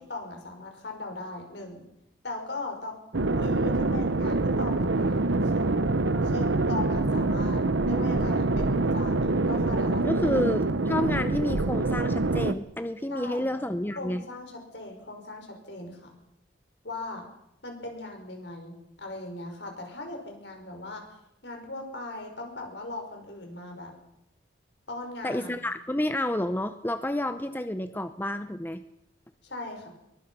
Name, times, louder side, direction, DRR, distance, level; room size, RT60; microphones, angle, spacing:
voice 1, 0.0-1.9 2.2-3.0 3.4-5.9 6.2-7.6 7.8-10.3 13.1-13.5 14.0-16.1 16.8-17.2 17.6-21.0 21.4-23.9 24.9-25.6 29.4-29.9, left 2 dB, 65° left, 3 dB, 5.6 m, -39 dB
sound 1, 3.1-12.5, right 2 dB, 80° right, 1.0 m, -25 dB
voice 2, 10.0-14.2 25.2-28.8, left 1 dB, 10° left, 10 dB, 0.7 m, -30 dB
22.5 x 21.5 x 5.6 m, 0.81 s
head